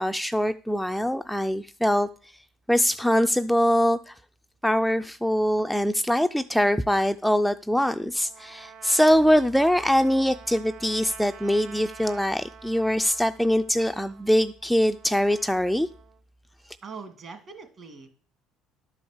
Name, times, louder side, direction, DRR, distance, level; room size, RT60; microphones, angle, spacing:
voice 1, 0.0-2.1 2.7-4.2 4.6-15.9, equal, ahead, 0.4 m, -23 dB
Trumpet, 8.1-16.2, right 7 dB, 60° right, 1.0 m, -48 dB
voice 2, 16.8-18.1, right 5 dB, 40° right, 2.0 m, -42 dB
11.0 x 4.9 x 7.1 m
cardioid pair, 110°, 0 cm